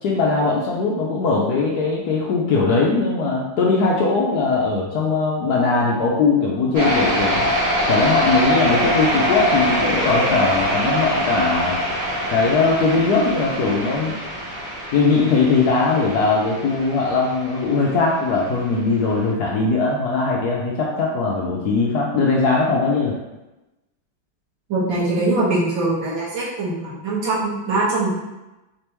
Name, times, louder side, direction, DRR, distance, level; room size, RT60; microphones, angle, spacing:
voice 1, 0.0-7.5 7.9-11.8 12.1-14.2 14.9-23.2, left 3 dB, 70° left, -3 dB, 1.0 m, -20 dB
sound 1, 6.7-18.2, equal, 40° right, 0.7 m, -23 dB
voice 2, 24.7-28.1, right 2 dB, 75° right, -7 dB, 2.1 m, -22 dB
4.4 x 3.3 x 2.9 m, 1.0 s
omnidirectional pair, 2.1 m